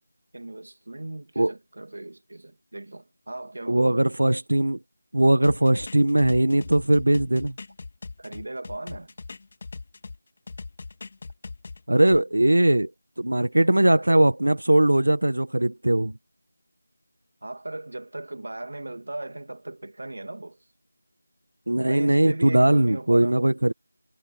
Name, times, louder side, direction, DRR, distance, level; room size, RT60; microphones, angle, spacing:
voice 1, 0.3-4.0 8.2-9.1 17.4-20.6 21.9-23.4, right 2 dB, 65° right, 2.5 m, -37 dB
voice 2, 3.7-4.8 5.1-7.5 11.9-12.9 13.2-16.1 21.7-23.7, right 1 dB, 85° right, 1.4 m, -20 dB
sound 1, 5.4-10.2 10.5-12.2, left 3 dB, 35° left, 3.1 m, -40 dB
figure-of-eight pair, 170°, 0 cm